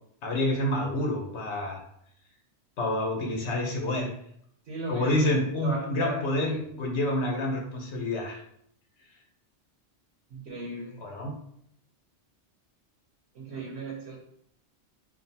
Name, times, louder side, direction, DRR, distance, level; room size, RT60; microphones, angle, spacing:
voice 1, 0.2-1.8 2.8-4.1 4.9-6.5 6.8-8.4 11.0-11.3, left 1 dB, 75° left, 1 dB, 1.1 m, -28 dB
voice 2, 4.7-6.8 10.3-11.0 13.3-14.2, right 2 dB, 70° right, -2 dB, 1.1 m, -37 dB
3.7 x 2.2 x 4.1 m, 0.70 s
omnidirectional pair, 1.2 m